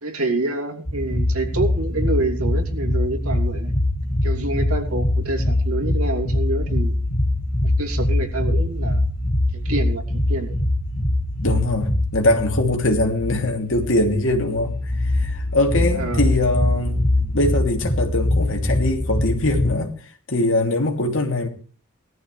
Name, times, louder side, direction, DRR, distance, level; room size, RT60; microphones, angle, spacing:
voice 1, 0.0-3.7 4.2-7.0 7.6-9.0 9.5-10.6 15.9-16.2, right 2 dB, 90° right, 2.9 m, -27 dB
sound 1, 0.9-19.7, left 1 dB, 40° left, 1.9 m, -23 dB
voice 2, 11.4-17.0 17.3-19.9 20.3-21.5, left 1 dB, 60° left, 2.9 m, -22 dB
19.0 x 13.5 x 3.3 m
head